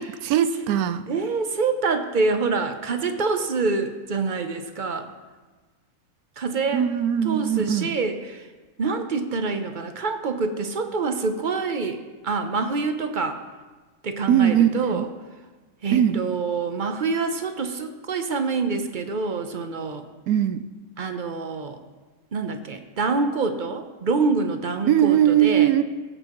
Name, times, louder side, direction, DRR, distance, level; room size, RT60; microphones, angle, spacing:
voice 1, 0.0-1.0 6.7-8.0 14.3-15.1 15.9-16.2 20.3-20.6 24.9-25.8, right 10 dB, 85° right, 13 dB, 1.1 m, -20 dB
voice 2, 1.1-5.1 6.4-6.9 7.2-8.5 8.8-13.4 14.0-15.1 15.8-20.0 21.0-21.8 22.3-25.7, right 4 dB, 45° right, 7 dB, 0.7 m, -26 dB
20.0 x 8.0 x 3.0 m, 1.3 s
omnidirectional pair, 1.5 m